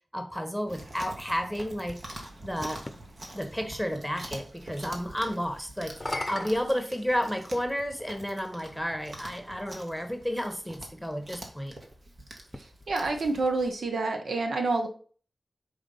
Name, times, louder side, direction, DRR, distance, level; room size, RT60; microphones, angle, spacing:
voice 1, 0.1-2.0 2.4-2.8 3.3-11.7, equal, ahead, 6 dB, 1.1 m, -32 dB
Chewing mastication, 0.7-13.7, right 1 dB, 60° right, 1.4 m, -46 dB
sound 1, 1.6-3.0 5.8-7.6 8.6-8.7 12.4-13.9, left 2 dB, 30° left, 0.7 m, -40 dB
voice 2, 12.9-14.9, right 3 dB, 90° right, 4 dB, 1.0 m, -28 dB
5.0 x 3.6 x 5.4 m, 0.42 s
cardioid pair, 45°, 0 cm